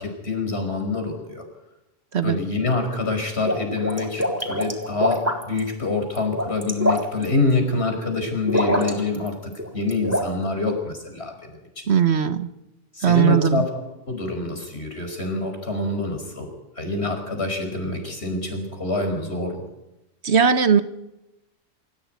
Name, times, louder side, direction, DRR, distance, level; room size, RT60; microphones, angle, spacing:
voice 1, 0.0-1.4 2.2-11.9 12.9-13.7 14.1-19.6, left 3 dB, 60° left, 5 dB, 5.7 m, -26 dB
sound 1, 3.2-5.6 6.2-7.3 8.5-9.3 9.5-10.3, equal, 10° right, 3.6 m, -24 dB
voice 2, 11.9-12.5 13.0-13.6 20.2-20.8, right 8 dB, 60° right, 11 dB, 1.3 m, -18 dB
26.0 x 15.5 x 9.5 m, 0.95 s
omnidirectional pair, 1.3 m